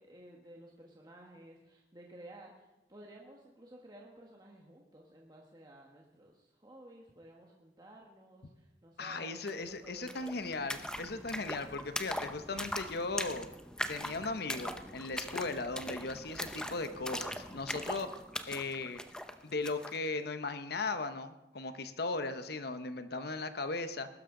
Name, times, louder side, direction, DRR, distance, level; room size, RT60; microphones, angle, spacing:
voice 1, 0.0-10.4, right 1 dB, 25° right, -1 dB, 1.4 m, -54 dB
voice 2, 9.0-13.5 13.9-18.1 18.5-19.0 19.4-24.1, left 3 dB, 60° left, 10 dB, 0.9 m, -37 dB
sound 1, 9.5-9.6 9.8-20.0, left 1 dB, 5° left, 0.7 m, -41 dB
21.0 x 12.5 x 3.8 m, 0.96 s
head